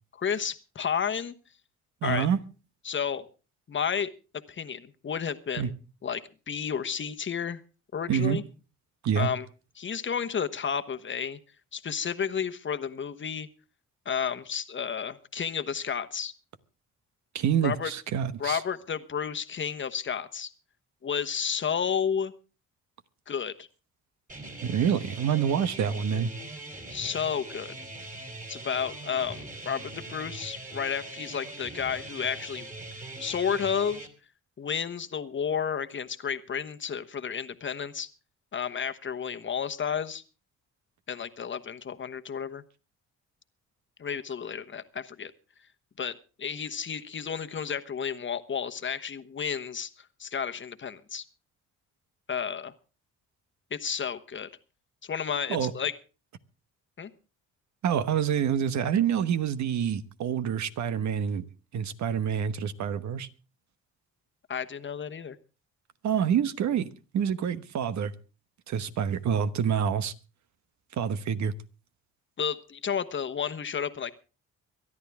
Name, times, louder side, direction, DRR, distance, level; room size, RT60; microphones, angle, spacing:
voice 1, 0.2-1.3 2.0-2.3 2.8-3.2 3.7-4.1 4.5-5.7 6.0-7.6 7.9-8.4 9.2-9.4 9.8-11.4 11.7-13.5 14.0-16.3 17.6-17.9 18.4-20.5 21.0-22.3 23.3-23.7 26.9-27.7 28.5-32.7 33.2-34.1 34.6-38.1 38.5-40.2 41.1-42.6 44.0-45.3 46.0-51.2 52.3-52.7 53.7-54.5 55.0-55.9 57.0-57.1 64.5-65.4 72.4-74.1, left 7 dB, 40° left, 1.2 m, -31 dB
voice 2, 2.0-2.4 5.6-5.7 8.1-8.4 9.0-9.3 17.3-18.6 24.6-26.3 55.5-55.7 57.8-61.4 61.7-63.3 66.0-68.1 68.7-70.1 71.0-71.5, right 8 dB, 65° right, 1.1 m, -27 dB
sound 1, 24.3-34.1, right 2 dB, 25° right, 3.6 m, -42 dB
24.0 x 11.0 x 3.5 m
cardioid pair, 90°, 30 cm